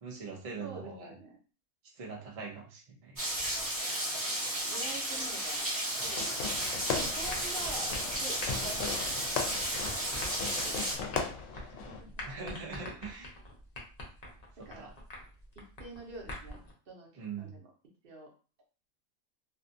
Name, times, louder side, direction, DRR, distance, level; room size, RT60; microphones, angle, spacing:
voice 1, 0.0-1.2 1.9-3.2 12.2-13.3 14.6-14.9 17.2-17.6, right 4 dB, 65° right, 0 dB, 0.3 m, -42 dB
voice 2, 0.6-1.4 4.7-5.6 6.0-6.6 6.9-9.3 10.4-10.8 11.5-12.1 14.6-14.9 15.6-16.6 16.9-17.7 18.0-18.3, right 2 dB, 50° right, -1 dB, 0.9 m, -46 dB
Rain, 3.2-10.9, right 1 dB, 20° right, 0.7 m, -33 dB
Fireworks, 6.0-12.0, left 5 dB, 70° left, 0.9 m, -38 dB
sound 1, 6.9-16.7, left 1 dB, 40° left, 0.6 m, -45 dB
2.6 x 2.3 x 2.6 m, 0.37 s
omnidirectional pair, 1.4 m